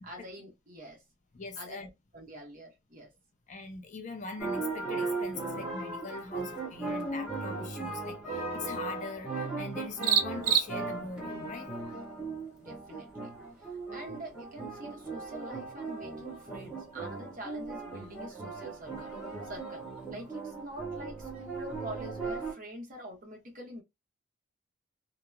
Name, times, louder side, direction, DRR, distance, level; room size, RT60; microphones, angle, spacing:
voice 1, 0.0-1.0 1.6-1.8 2.1-3.1 12.6-13.3 13.6-19.1 19.4-23.8, right 1 dB, 40° right, 0.9 m, -45 dB
voice 2, 1.3-1.9 3.5-11.7, left 4 dB, 35° left, 0.4 m, -42 dB
sound 1, 4.4-22.5, right 3 dB, 5° right, 1.0 m, -38 dB
sound 2, 10.0-20.5, right 9 dB, 80° right, 0.4 m, -37 dB
2.8 x 2.1 x 2.2 m
head